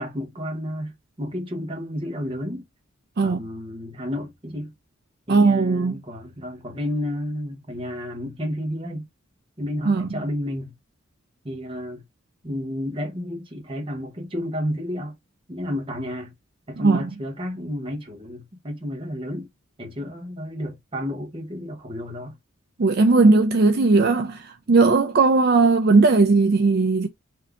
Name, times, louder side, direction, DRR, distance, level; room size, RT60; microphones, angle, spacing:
voice 1, 0.0-2.7 3.2-4.7 5.3-9.1 9.6-10.7 11.4-12.0 12.4-15.2 15.5-16.3 16.7-19.5 19.8-22.4, equal, 25° right, 1.0 m, -31 dB
voice 2, 5.3-5.9 9.8-10.1 16.8-17.1 22.8-27.1, right 3 dB, 50° right, 0.4 m, -18 dB
3.4 x 2.8 x 3.6 m
head